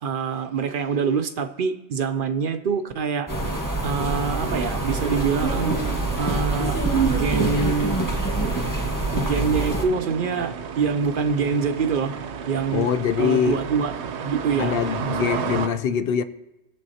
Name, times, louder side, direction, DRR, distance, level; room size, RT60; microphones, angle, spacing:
voice 1, 0.0-3.3 3.8-5.8 6.2-8.0 9.1-12.1 12.5-12.9 13.2-15.4, right 5 dB, 60° right, 0.7 m, -25 dB
sound 1, 3.3-9.8, right 2 dB, 15° left, 1.4 m, -25 dB
sound 2, 4.4-15.7, right 6 dB, 80° right, 1.0 m, -33 dB
voice 2, 12.7-13.6 14.6-16.2, left 7 dB, 65° left, 0.7 m, -23 dB
17.5 x 7.4 x 2.8 m
omnidirectional pair, 1.1 m